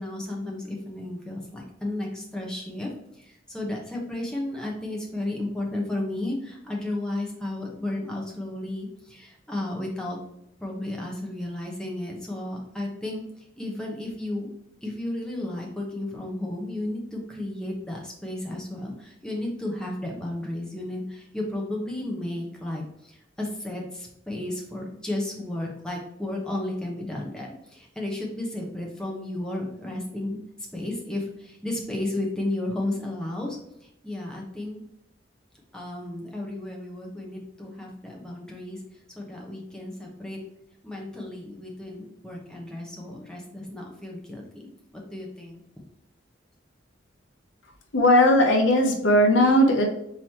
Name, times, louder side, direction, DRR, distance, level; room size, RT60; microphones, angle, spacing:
voice 1, 0.0-10.2 10.6-14.5 14.8-30.4 30.7-34.8 35.7-40.4 40.8-44.7 45.1-45.6, left 1 dB, 5° left, -2 dB, 0.9 m, -33 dB
voice 2, 47.9-49.8, left 1 dB, 85° left, 2 dB, 0.9 m, -18 dB
4.0 x 3.1 x 4.2 m, 0.77 s
head